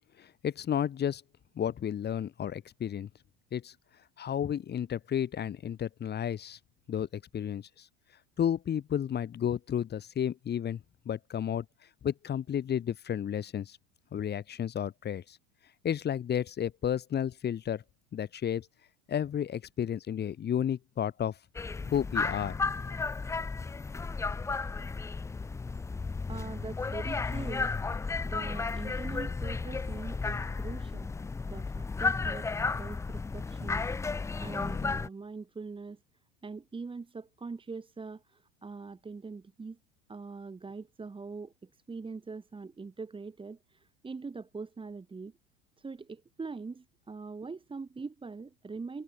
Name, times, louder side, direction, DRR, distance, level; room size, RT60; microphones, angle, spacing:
voice 1, 0.2-1.2 1.6-3.1 3.5-3.7 4.2-6.6 6.9-7.9 8.4-10.8 11.1-11.7 12.0-13.8 14.1-15.4 15.8-17.8 18.1-18.7 19.1-21.4 21.9-22.6, left 9 dB, 35° left, 2.1 m, -32 dB
sound 1, 21.5-35.1, left 4 dB, 10° left, 0.5 m, -33 dB
voice 2, 26.3-27.7 28.2-31.1 31.5-32.5 32.8-36.0 36.4-39.8 40.1-45.3 45.8-49.0, right 4 dB, 15° right, 2.6 m, -43 dB
hypercardioid pair, 85°, 31 cm